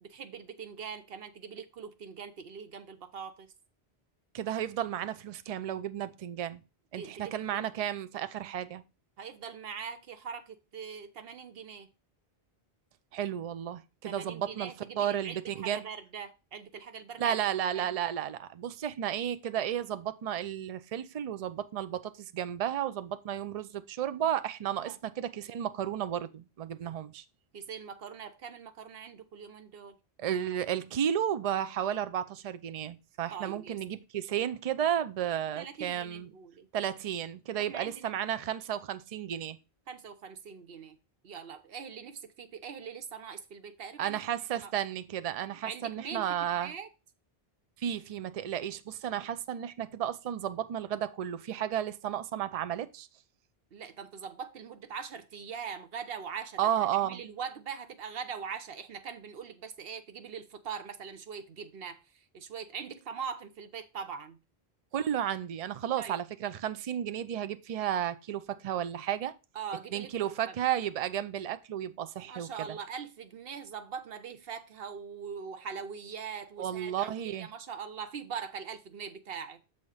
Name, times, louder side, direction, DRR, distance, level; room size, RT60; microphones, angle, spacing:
voice 1, 0.0-3.5 6.9-7.7 9.2-11.9 14.1-17.4 17.7-17.9 24.9-25.0 27.5-30.0 33.3-33.8 35.6-36.7 37.6-38.1 39.9-41.0 41.2-44.2 44.5-44.7 45.6-46.9 53.7-56.7 57.0-64.4 66.0-66.2 69.5-70.6 72.2-79.6, right 6 dB, 65° right, 1.0 m, -42 dB
voice 2, 4.3-6.6 6.9-8.8 13.1-15.8 17.2-27.2 30.2-36.3 36.7-39.6 44.0-46.7 47.8-53.1 56.6-57.2 64.9-69.3 69.9-72.5 76.6-77.5, right 10 dB, 50° right, 0.5 m, -33 dB
6.9 x 4.2 x 4.9 m
omnidirectional pair, 1.1 m